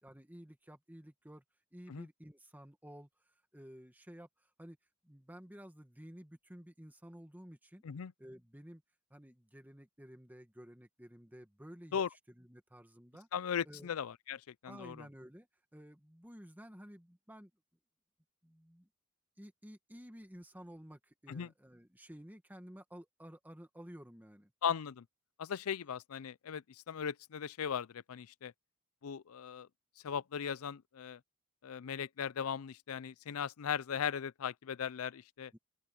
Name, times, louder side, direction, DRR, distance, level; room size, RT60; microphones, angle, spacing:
voice 1, 0.0-1.4 1.7-4.8 5.0-7.8 8.2-8.8 9.1-13.3 13.6-13.9 14.7-17.5 18.4-18.9 19.4-24.5 35.5-35.6, equal, 10° right, 1.8 m, -53 dB
voice 2, 13.3-15.0 21.3-21.5 24.6-25.0 25.4-28.5 29.0-29.7 30.0-31.2 31.6-35.5, left 7 dB, 80° left, 0.5 m, -38 dB
open air
head